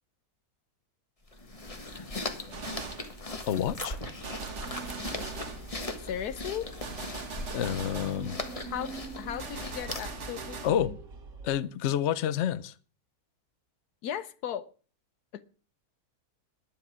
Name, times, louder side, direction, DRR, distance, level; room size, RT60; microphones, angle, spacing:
sound 1, 1.3-10.3, left 2 dB, 25° left, 1.5 m, -39 dB
Gunshot gunfire, 2.5-3.2 4.2-5.7 6.8-8.2 9.4-10.8, right 4 dB, 50° right, 1.7 m, -40 dB
voice 1, 3.4-4.0 7.5-8.4 10.6-10.9 11.4-12.7, left 10 dB, 55° left, 0.9 m, -28 dB
sound 2, 4.3-11.6, right 4 dB, 65° right, 2.1 m, -45 dB
voice 2, 6.0-6.7 8.7-11.0 14.0-14.7 15.3-15.4, left 9 dB, 80° left, 1.3 m, -36 dB
11.5 x 9.7 x 6.2 m
omnidirectional pair, 1.6 m